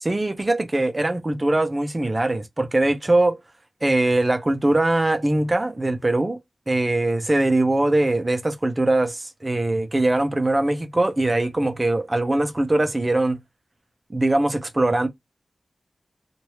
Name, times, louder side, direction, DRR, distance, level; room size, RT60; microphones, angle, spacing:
voice 1, 0.0-3.4 3.8-6.4 6.7-13.4 14.1-15.1, right 2 dB, 25° right, 0.7 m, -21 dB
3.1 x 2.6 x 3.0 m
wide cardioid pair, 105°, 0 cm